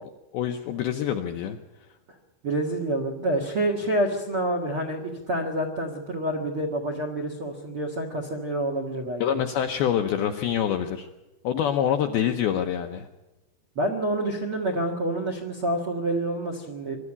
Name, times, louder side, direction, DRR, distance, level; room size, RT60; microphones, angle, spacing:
voice 1, 0.3-1.6 9.2-11.1 11.4-13.1, left 9 dB, 80° left, 5 dB, 2.2 m, -26 dB
voice 2, 2.4-9.2 13.7-17.0, right 1 dB, 65° right, 5 dB, 1.3 m, -28 dB
23.0 x 12.5 x 9.8 m, 1.1 s
omnidirectional pair, 5.4 m